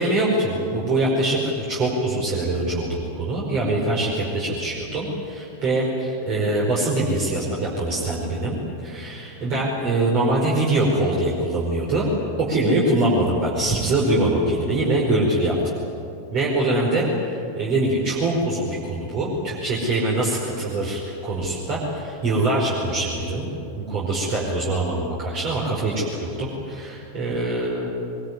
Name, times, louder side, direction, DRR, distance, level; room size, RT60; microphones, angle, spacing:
voice 1, 0.0-12.1 12.4-15.5 16.3-17.1 17.5-23.5 23.7-27.9, right 2 dB, 40° right, -3 dB, 5.1 m, -23 dB
22.5 x 22.0 x 9.7 m, 2.7 s
figure-of-eight pair, 90°, 0 cm